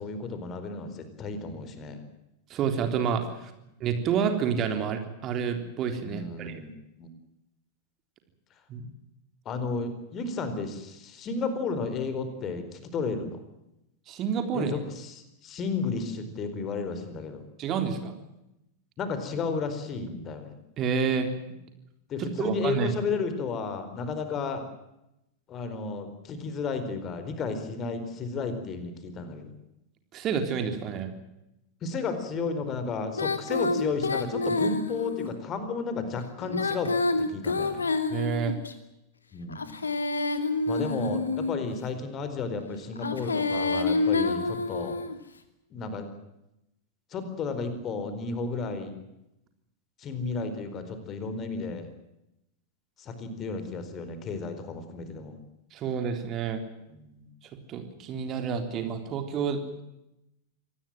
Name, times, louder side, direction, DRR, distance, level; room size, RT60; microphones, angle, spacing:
voice 1, 0.0-2.0 6.1-7.1 9.4-13.4 14.5-17.4 19.0-20.6 22.1-24.7 25.5-29.5 31.8-36.9 37.3-37.8 39.3-39.7 40.7-45.0 45.7-46.1 47.1-48.9 50.0-51.9 53.0-55.4 56.9-57.3, left 4 dB, 30° left, 10 dB, 4.5 m, -33 dB
voice 2, 2.5-3.5 3.8-6.6 8.7-8.9 14.1-14.7 17.6-18.1 20.8-21.3 22.2-22.9 30.1-31.1 38.1-38.5 55.7-56.6 57.7-59.6, right 7 dB, 35° right, 7 dB, 3.6 m, -29 dB
Female singing, 33.1-35.3 36.4-38.7 39.5-41.7 42.9-45.2, left 3 dB, 75° left, 2.5 m, -28 dB
26.0 x 19.0 x 7.7 m, 0.88 s
figure-of-eight pair, 90°, 0 cm